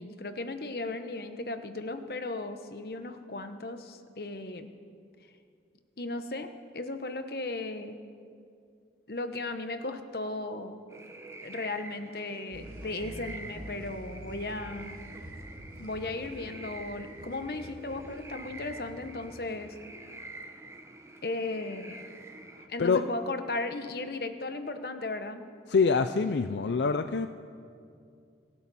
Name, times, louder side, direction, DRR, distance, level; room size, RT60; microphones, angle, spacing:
voice 1, 0.0-4.7 6.0-7.9 9.1-10.8 11.4-15.0 15.8-19.8 21.2-22.0 22.7-25.4, left 2 dB, 60° left, 8 dB, 1.0 m, -36 dB
sound 1, 10.9-22.7, right 2 dB, 15° right, 0.8 m, -47 dB
sound 2, 12.5-19.9, equal, 50° right, 2.6 m, -47 dB
voice 2, 25.7-27.3, left 5 dB, 80° left, 9 dB, 0.5 m, -25 dB
28.0 x 12.0 x 4.2 m, 2.3 s
head